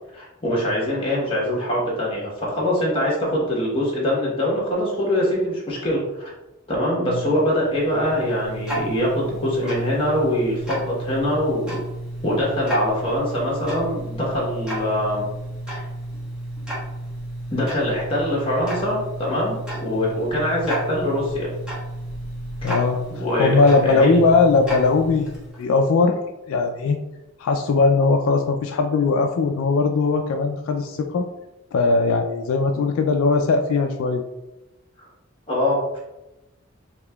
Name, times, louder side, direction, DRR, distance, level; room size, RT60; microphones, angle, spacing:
voice 1, 0.1-6.3 6.7-11.8 12.2-15.3 15.7-15.8 17.5-21.5 23.1-24.2 35.5-36.0, left 1 dB, 25° left, -4 dB, 1.2 m, -23 dB
Tick-tock, 7.4-25.7, right 1 dB, 5° right, 1.0 m, -32 dB
voice 2, 22.6-25.3 25.6-26.2 26.5-27.0 27.4-31.2 31.7-34.2, left 4 dB, 70° left, 4 dB, 0.3 m, -19 dB
4.8 x 2.8 x 2.3 m, 1.0 s
head